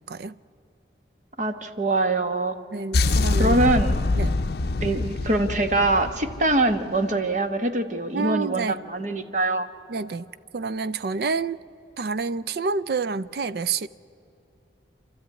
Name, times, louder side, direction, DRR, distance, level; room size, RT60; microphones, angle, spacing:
voice 1, 1.4-2.6 3.3-4.0 4.8-9.7, right 2 dB, 40° right, 1.2 m, -23 dB
voice 2, 2.7-3.5 4.2-4.4 8.1-8.8 9.9-10.3 10.5-11.6 12.0-13.9, right 4 dB, 60° right, 0.4 m, -28 dB
sound 1, 2.9-7.0, left 3 dB, 60° left, 0.6 m, -24 dB
28.5 x 13.0 x 9.2 m
head